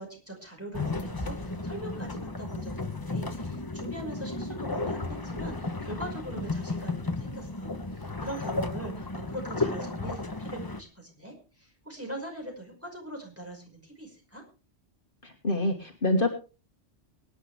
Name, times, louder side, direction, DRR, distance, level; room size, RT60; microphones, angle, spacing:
voice 1, 0.0-14.4, right 1 dB, 10° right, 1 dB, 5.4 m, -42 dB
Havlyd fra køje, 0.7-10.8, left 2 dB, 20° left, 1.0 m, -33 dB
voice 2, 15.2-16.3, left 1 dB, 50° left, 3 dB, 1.8 m, -26 dB
23.5 x 10.0 x 3.4 m, 0.34 s
omnidirectional pair, 1.2 m